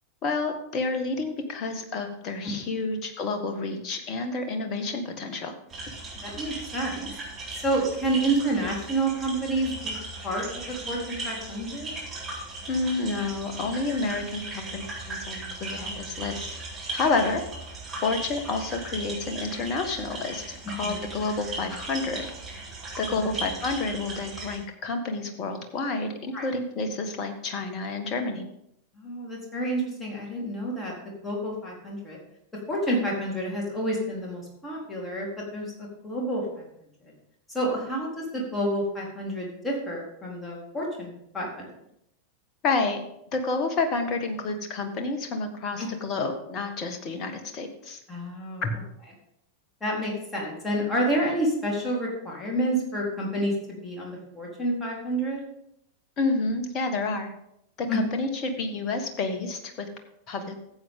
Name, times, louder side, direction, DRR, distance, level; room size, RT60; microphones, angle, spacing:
voice 1, 0.2-5.5 12.7-16.5 16.9-17.4 18.0-22.3 23.0-28.4 42.6-43.0 43.3-48.0 48.6-48.8 56.2-57.3 57.8-59.9 60.3-60.5, left 3 dB, 35° left, 6 dB, 1.6 m, -29 dB
sound 1, 5.7-24.6, right 2 dB, 20° right, 3.8 m, -37 dB
voice 2, 6.2-7.1 7.6-10.0 10.2-10.4 10.9-11.9 15.7-15.9 20.8-21.1 23.1-23.3 26.3-26.4 29.0-30.9 31.2-32.2 32.7-35.7 36.0-36.6 37.0-37.1 37.5-41.7 45.8-45.9 48.1-48.6 49.8-55.4 57.9-58.0, right 1 dB, 10° left, -3 dB, 3.9 m, -29 dB
14.5 x 8.1 x 3.8 m, 0.76 s
figure-of-eight pair, 90°, 0 cm